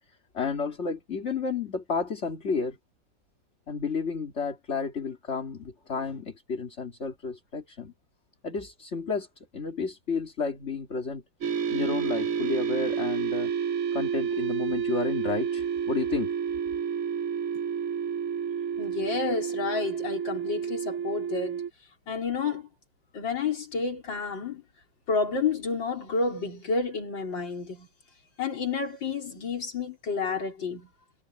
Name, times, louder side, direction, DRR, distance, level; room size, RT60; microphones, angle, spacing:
voice 1, 0.1-2.8 3.7-7.9 8.4-13.5 13.9-16.4, left 5 dB, 35° left, 2.6 m, -32 dB
sound 1, 11.4-21.7, right 7 dB, 55° right, 0.9 m, -30 dB
voice 2, 18.8-21.6 22.1-22.7 23.1-24.6 25.1-27.9 28.4-30.9, left 4 dB, 75° left, 4.7 m, -30 dB
omnidirectional pair, 2.0 m